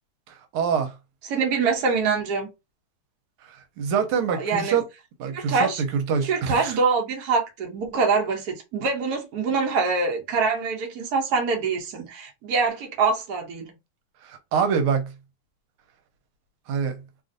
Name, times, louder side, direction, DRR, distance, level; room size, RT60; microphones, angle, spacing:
voice 1, 0.5-0.9 3.5-4.8 5.2-6.7 14.2-15.1 16.7-17.0, right 6 dB, 85° right, 1.5 m, -25 dB
voice 2, 1.2-2.5 4.3-4.8 5.3-5.8 6.2-13.7, right 4 dB, 60° right, 1.1 m, -24 dB
3.3 x 2.4 x 2.5 m
omnidirectional pair, 2.3 m